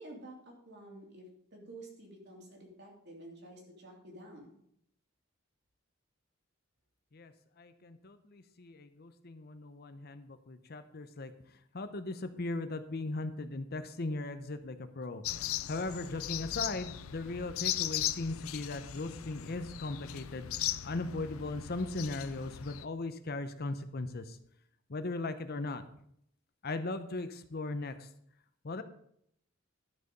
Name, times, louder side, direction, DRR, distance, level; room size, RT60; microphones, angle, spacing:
voice 1, 0.0-4.5, right 1 dB, 55° right, -1 dB, 3.1 m, -50 dB
voice 2, 7.6-11.3 11.7-15.2 15.7-20.5 20.8-24.4 24.9-25.8 26.6-28.1 28.6-28.8, left 2 dB, 50° left, 10 dB, 0.8 m, -38 dB
sound 1, 15.2-22.9, left 12 dB, 90° left, 0.5 m, -38 dB
12.0 x 6.7 x 5.3 m, 0.69 s
head